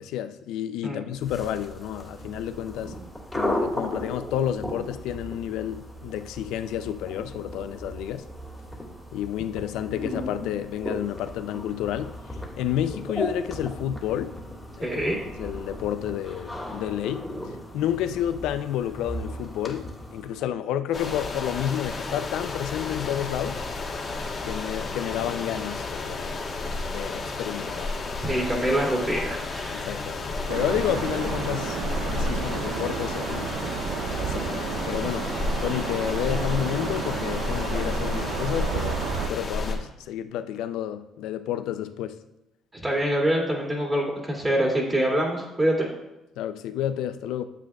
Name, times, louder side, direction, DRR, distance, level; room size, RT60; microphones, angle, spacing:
voice 1, 0.0-2.9 3.3-8.3 9.1-12.1 12.6-14.4 14.8-15.0 15.3-23.6 24.4-26.5 26.9-27.9 29.7-33.5 34.2-35.3 35.6-42.2 46.4-47.4, left 11 dB, 85° left, 0.4 m, -30 dB
sound 1, 1.2-20.5, equal, 5° left, 1.9 m, -36 dB
voice 2, 14.8-15.2 28.2-29.9 42.8-45.9, right 1 dB, 20° right, 2.3 m, -25 dB
sound 2, 20.9-39.7, left 3 dB, 40° left, 1.2 m, -31 dB
sound 3, 30.5-39.3, right 8 dB, 80° right, 0.4 m, -32 dB
9.1 x 7.4 x 2.3 m
cardioid pair, 85°, 0 cm